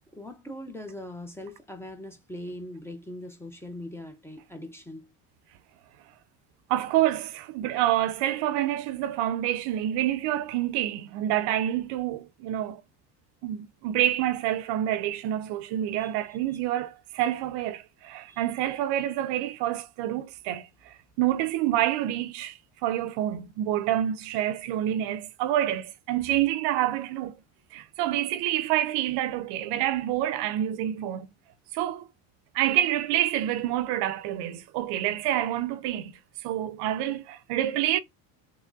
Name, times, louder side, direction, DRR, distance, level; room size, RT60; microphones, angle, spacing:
voice 1, 0.1-5.1 16.0-16.1 18.3-18.4, left 1 dB, 5° left, 0.6 m, -41 dB
voice 2, 6.7-12.8 13.4-27.4 27.7-31.3 31.7-32.1 32.5-36.1 36.4-38.0, right 12 dB, 70° right, 0.5 m, -27 dB
3.5 x 3.0 x 2.5 m
cardioid pair, 130°, 43 cm